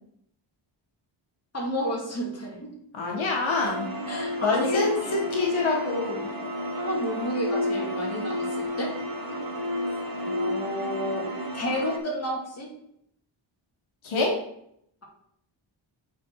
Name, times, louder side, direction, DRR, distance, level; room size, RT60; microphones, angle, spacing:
voice 1, 1.5-2.7 4.1-5.2 6.8-8.9 10.2-11.3 11.5-12.7, equal, 30° left, -3 dB, 2.4 m, -31 dB
voice 2, 2.9-3.9 4.4-6.3 14.0-14.4, left 3 dB, 80° left, -1 dB, 1.7 m, -26 dB
sound 1, 3.6-12.0, left 1 dB, 45° right, 1.7 m, -31 dB
8.3 x 4.4 x 4.7 m, 0.72 s
wide cardioid pair, 115°, 47 cm